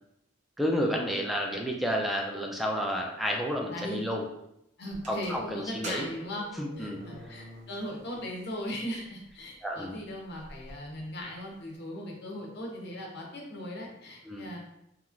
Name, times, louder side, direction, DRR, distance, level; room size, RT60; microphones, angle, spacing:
voice 1, 0.6-4.2 5.1-6.1 6.6-7.0 9.6-10.0 14.2-14.5, equal, ahead, 0 dB, 0.3 m, -31 dB
voice 2, 3.7-4.0 4.8-6.5 6.8-14.6, left 1 dB, 60° left, -1 dB, 0.8 m, -38 dB
sound 1, 4.9-8.0 8.4-8.5 9.3-9.4 9.8-9.9 10.1-10.7, right 1 dB, 40° right, 0.7 m, -45 dB
2.9 x 2.4 x 2.4 m, 0.81 s
head